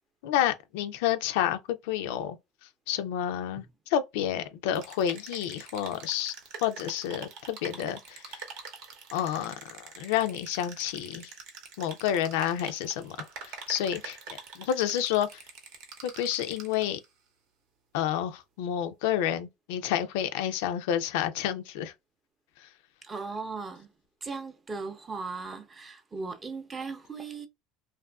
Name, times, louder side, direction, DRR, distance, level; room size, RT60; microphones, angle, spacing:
voice 1, 0.2-2.4 2.6-6.3 6.6-8.5 9.1-11.3 11.8-15.4 16.0-17.0 17.9-21.9 22.6-22.7, left 10 dB, 80° left, 0.3 m, -30 dB
sound 1, 4.7-17.0, right 5 dB, 70° right, 0.8 m, -45 dB
voice 2, 23.0-23.9 24.2-27.5, right 4 dB, 20° right, 0.5 m, -37 dB
2.5 x 2.4 x 2.2 m
supercardioid pair, 110°, 0 cm